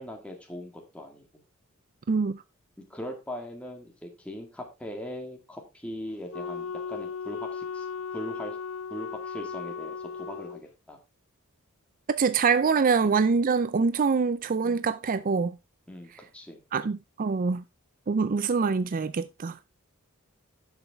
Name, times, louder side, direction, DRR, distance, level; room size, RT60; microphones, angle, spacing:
voice 1, 0.0-1.4 2.9-7.9 8.1-8.6 8.9-11.0 13.0-13.1 14.6-14.8 15.9-16.6, equal, 5° left, 1.9 m, -40 dB
voice 2, 2.1-2.4 12.1-15.6 16.7-17.6 18.1-19.6, right 5 dB, 40° right, 0.4 m, -25 dB
Wind instrument woodwind instrument, 6.3-10.6, left 6 dB, 70° left, 0.7 m, -36 dB
11.5 x 7.0 x 3.5 m
head